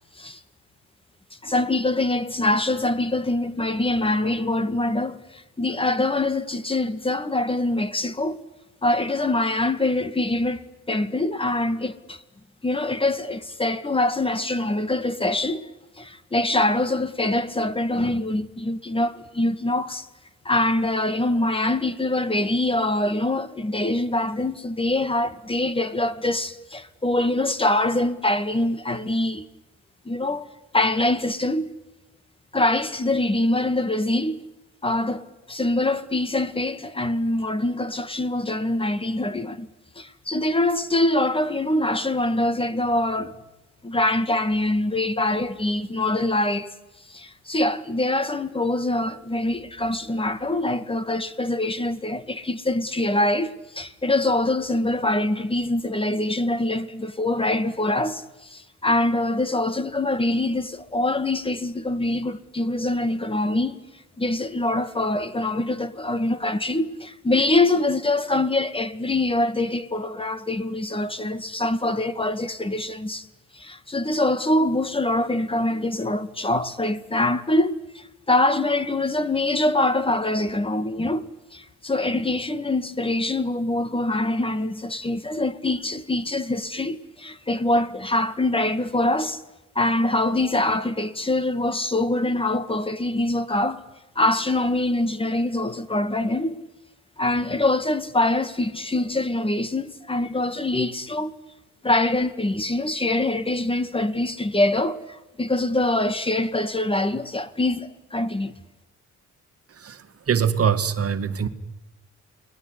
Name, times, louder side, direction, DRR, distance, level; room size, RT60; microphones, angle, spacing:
voice 1, 1.4-8.4 8.8-10.6 10.9-12.2 12.6-15.7 16.0-20.0 20.5-29.5 30.1-30.5 30.7-31.7 32.5-34.4 34.8-39.7 40.0-43.3 43.8-46.7 47.1-63.8 64.2-73.3 73.5-89.4 89.8-93.8 94.2-96.6 97.2-101.3 101.8-105.0 105.4-108.5, left 2 dB, 20° left, 2.1 m, -24 dB
voice 2, 110.3-111.5, right 7 dB, 50° right, 2.2 m, -22 dB
29.0 x 20.5 x 9.9 m
cardioid pair, 90°, 30 cm